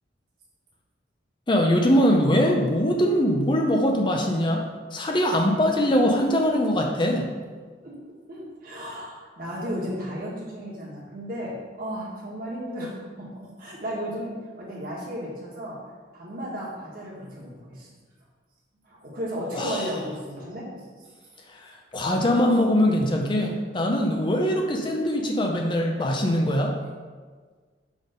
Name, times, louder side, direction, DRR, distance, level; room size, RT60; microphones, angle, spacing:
voice 1, 1.5-4.6 4.9-7.3 19.5-19.9 21.5-26.7, equal, 25° left, 1 dB, 0.5 m, -22 dB
voice 2, 8.3-15.8 16.1-17.9 18.9-20.7 23.3-23.5, equal, 50° right, -5 dB, 1.7 m, -34 dB
6.3 x 3.6 x 5.2 m, 1.5 s
head